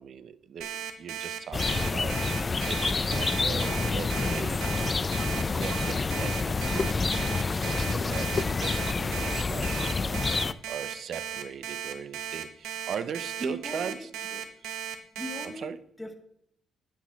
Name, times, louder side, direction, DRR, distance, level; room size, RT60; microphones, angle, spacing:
voice 1, 0.0-4.7 5.3-10.2 10.7-14.3 15.4-15.8, right 7 dB, 60° right, 15 dB, 0.6 m, -39 dB
Alarm, 0.6-15.5, right 9 dB, 90° right, 0.9 m, -36 dB
sound 1, 1.5-10.5, left 4 dB, 30° left, 0.4 m, -28 dB
voice 2, 13.4-14.4 15.2-16.1, equal, 5° left, 3 dB, 1.3 m, -39 dB
8.5 x 5.9 x 7.1 m, 0.73 s
cardioid pair, 90°, 0 cm